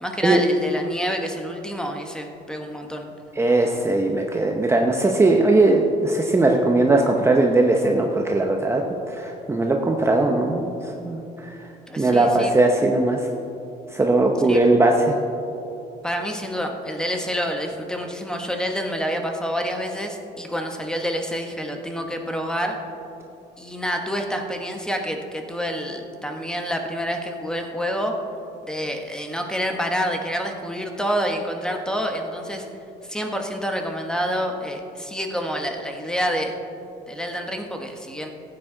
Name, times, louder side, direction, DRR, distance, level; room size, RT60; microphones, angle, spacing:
voice 1, 0.0-3.0 11.9-12.5 14.5-14.6 16.0-22.8 23.6-28.1 28.6-32.7 33.1-36.5 37.1-38.3, equal, 5° left, 3 dB, 1.2 m, -28 dB
voice 2, 3.4-11.6 12.0-13.3 13.9-15.1, right 2 dB, 15° right, 1 dB, 0.8 m, -19 dB
15.0 x 8.9 x 3.8 m, 2.8 s
cardioid pair, 110°, 17 cm